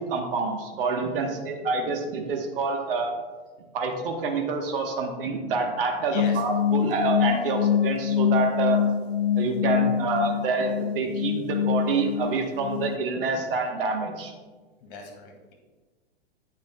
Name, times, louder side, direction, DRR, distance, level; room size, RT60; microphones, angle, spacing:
voice 1, 0.0-3.1 3.7-8.8 9.4-14.3, right 4 dB, 60° right, 3 dB, 1.3 m, -27 dB
voice 2, 6.0-6.4 14.8-15.5, left 4 dB, 55° left, 1 dB, 2.4 m, -40 dB
sound 1, 6.1-13.0, left 8 dB, 75° left, 0.6 m, -25 dB
10.0 x 9.1 x 2.3 m, 1.3 s
figure-of-eight pair, 95°, 32 cm